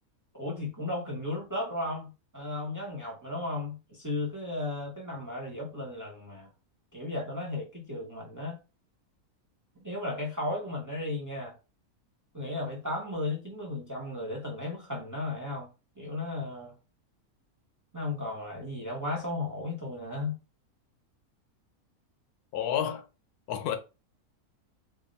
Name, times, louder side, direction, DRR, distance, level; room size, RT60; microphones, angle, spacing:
voice 1, 0.3-6.5 6.9-8.6 9.8-11.5 12.3-15.7 16.0-16.7 17.9-20.4, left 2 dB, 15° right, 0.8 m, -35 dB
voice 2, 22.5-23.0 23.5-23.8, left 9 dB, 85° left, 1.1 m, -30 dB
3.5 x 2.1 x 4.0 m
omnidirectional pair, 1.6 m